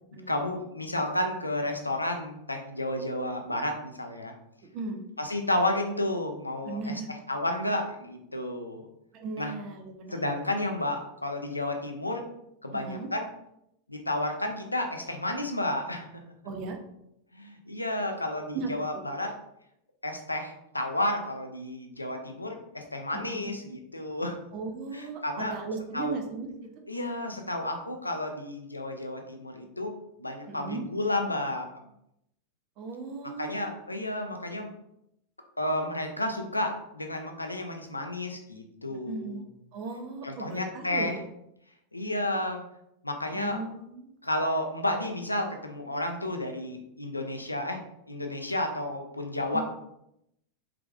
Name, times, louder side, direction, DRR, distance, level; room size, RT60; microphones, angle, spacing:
voice 1, 0.3-4.3 5.2-8.9 9.4-9.5 10.1-12.2 12.6-13.3 13.9-16.2 17.3-19.3 20.0-24.4 24.9-25.5 25.9-26.2 26.9-29.9 30.2-31.7 33.4-34.7 35.6-39.4 40.2-41.2 41.9-42.6 43.0-43.6 44.2-47.8 48.1-49.6, left 1 dB, 85° left, 4 dB, 0.6 m, -31 dB
voice 2, 4.7-5.1 6.6-7.1 9.1-10.2 12.7-13.1 16.4-16.8 18.5-19.0 23.1-23.5 24.5-26.5 30.5-30.8 32.8-33.7 38.9-39.4 39.7-41.2 43.3-44.1 49.5-49.6, right 4 dB, 40° right, 4 dB, 0.8 m, -37 dB
4.9 x 3.4 x 2.4 m, 0.79 s
figure-of-eight pair, 90°, 0 cm